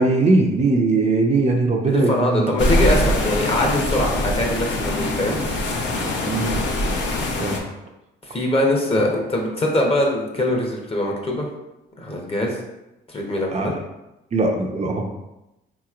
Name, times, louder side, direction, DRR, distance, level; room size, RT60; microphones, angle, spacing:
voice 1, 0.0-2.6 6.3-6.6 7.4-7.6 8.9-9.0 13.5-13.8 14.3-15.1, right 3 dB, 35° right, 0 dB, 0.5 m, -20 dB
voice 2, 1.9-5.9 8.2-11.5 12.0-12.6 13.1-13.7, left 1 dB, 30° left, -1 dB, 0.9 m, -22 dB
sound 1, 2.6-7.6, left 1 dB, 70° left, 0.7 m, -23 dB
3.9 x 2.9 x 2.4 m, 0.95 s
cardioid pair, 90°, 20 cm